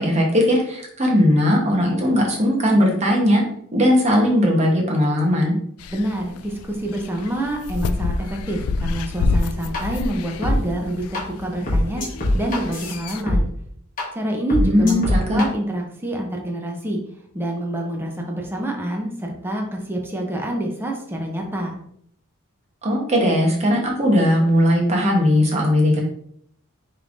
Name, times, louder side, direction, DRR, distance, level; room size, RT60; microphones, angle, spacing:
voice 1, 0.0-3.4 3.7-5.6 14.6-15.4 22.8-26.0, equal, 30° right, -1 dB, 1.1 m, -18 dB
sound 1, 5.8-13.2, left 3 dB, 85° left, 0.3 m, -28 dB
voice 2, 5.9-12.0 12.3-13.5 14.1-15.0 15.3-17.0 17.3-21.7, right 1 dB, 10° right, 0 dB, 0.7 m, -27 dB
sound 2, 9.7-9.8 10.4-10.6 11.1-11.2 11.7-13.4 14.0-14.1 14.5-15.4, left 2 dB, 40° left, 1.2 m, -22 dB
5.3 x 3.3 x 2.6 m, 0.68 s
head